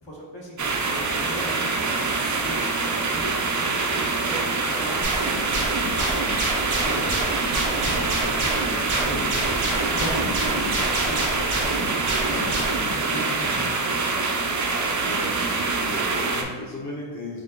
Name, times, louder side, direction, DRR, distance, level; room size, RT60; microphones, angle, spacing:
voice 1, 0.0-2.6 3.1-6.2 6.8-7.2 7.5-9.6 9.9-11.8 12.3-13.9, equal, 65° left, -4 dB, 1.2 m, -37 dB
sound 1, 0.6-16.4, right 3 dB, 40° right, 0.5 m, -25 dB
sound 2, 5.0-12.9, right 2 dB, 90° right, 0.9 m, -28 dB
voice 2, 14.9-17.4, left 1 dB, 35° left, -4 dB, 0.8 m, -36 dB
3.7 x 2.4 x 3.7 m, 1.4 s
wide cardioid pair, 65°, 49 cm